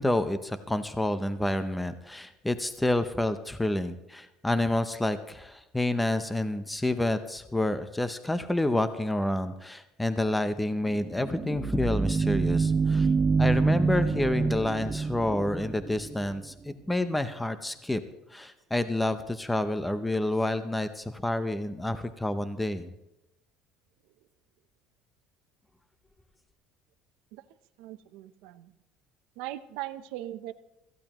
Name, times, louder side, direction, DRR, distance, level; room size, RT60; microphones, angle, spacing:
voice 1, 0.0-13.1 13.4-18.0 18.3-22.9, left 1 dB, 5° left, 10 dB, 0.7 m, -29 dB
sound 1, 10.9-16.4, right 4 dB, 20° right, 0.3 m, -26 dB
voice 2, 27.8-28.7 29.4-30.5, right 14 dB, 80° right, 11 dB, 0.7 m, -39 dB
17.5 x 14.5 x 3.1 m, 0.91 s
cardioid pair, 130°, 0 cm